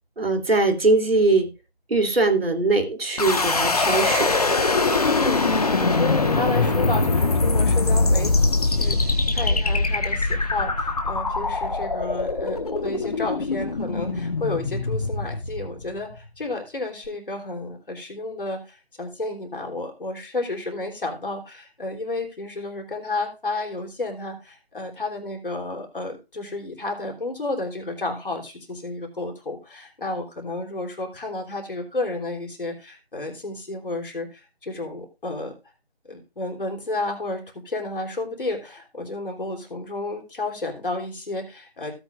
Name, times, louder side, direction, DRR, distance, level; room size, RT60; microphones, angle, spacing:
voice 1, 0.2-1.5 1.9-4.3, right 3 dB, 65° right, 6 dB, 3.2 m, -21 dB
sound 1, 3.2-16.1, left 3 dB, 35° left, 1.4 m, -22 dB
voice 2, 5.1-35.5 36.1-41.9, left 2 dB, 55° left, 2 dB, 3.6 m, -32 dB
16.5 x 8.9 x 2.5 m, 0.28 s
figure-of-eight pair, 170°, 32 cm